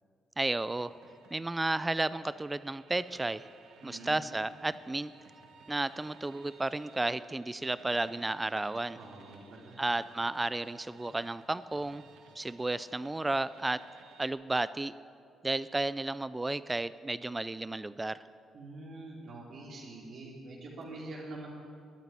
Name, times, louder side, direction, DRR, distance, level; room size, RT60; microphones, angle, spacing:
voice 1, 0.4-0.9 1.3-3.4 3.8-5.1 5.7-9.0 9.8-12.0 12.4-13.8 14.2-14.9 15.4-18.2, right 2 dB, 15° right, 16 dB, 0.4 m, -33 dB
sound 1, 0.6-14.3, right 4 dB, 85° right, 1.9 m, -58 dB
voice 2, 3.8-4.2 9.0-9.8 18.5-21.5, right 2 dB, 60° right, -4 dB, 3.3 m, -45 dB
12.5 x 9.3 x 10.0 m, 2.3 s
cardioid pair, 90°, 0 cm